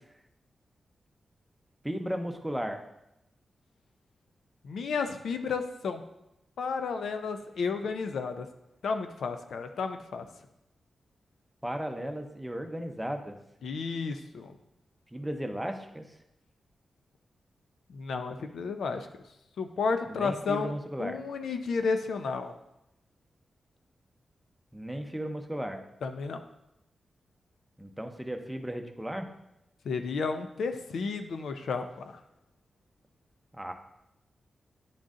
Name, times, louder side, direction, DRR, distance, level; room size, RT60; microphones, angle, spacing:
voice 1, 1.8-2.8 11.6-13.4 15.1-16.0 20.1-21.2 24.7-25.8 27.8-29.3 33.5-33.7, equal, 5° right, 4 dB, 0.7 m, -35 dB
voice 2, 4.6-6.0 6.6-8.5 8.8-10.2 13.6-14.6 17.9-19.1 19.6-20.7 21.0-22.5 26.0-26.4 29.8-32.2, left 4 dB, 85° left, 7 dB, 0.6 m, -32 dB
10.0 x 3.9 x 3.7 m, 0.86 s
wide cardioid pair, 100°, 0 cm